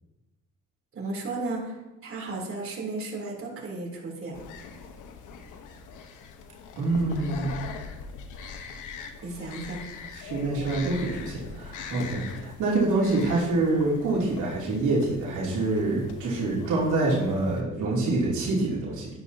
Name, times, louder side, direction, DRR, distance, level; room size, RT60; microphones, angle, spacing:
voice 1, 0.9-1.8 2.0-4.3 9.2-9.8, right 2 dB, 45° right, -3 dB, 3.2 m, -34 dB
sound 1, 4.3-17.6, left 5 dB, 90° left, 1.1 m, -41 dB
voice 2, 6.8-7.6 10.2-19.1, right 2 dB, 80° right, -6 dB, 2.9 m, -26 dB
10.5 x 10.5 x 2.8 m, 1.0 s
cardioid pair, 90°, 30 cm